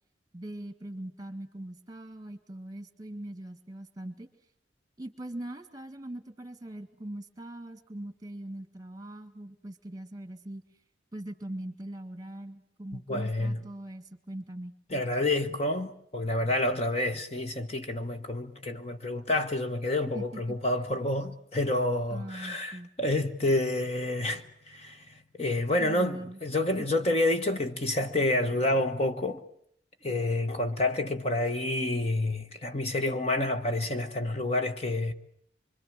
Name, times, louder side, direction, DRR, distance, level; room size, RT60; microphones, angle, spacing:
voice 1, 0.3-4.3 5.0-10.6 11.1-14.7 20.1-20.6 22.1-22.9 25.8-26.4, right 1 dB, 20° right, 1.8 m, -41 dB
voice 2, 13.1-13.6 14.9-29.4 30.0-35.1, left 2 dB, 30° left, 1.2 m, -29 dB
25.5 x 25.0 x 7.5 m
head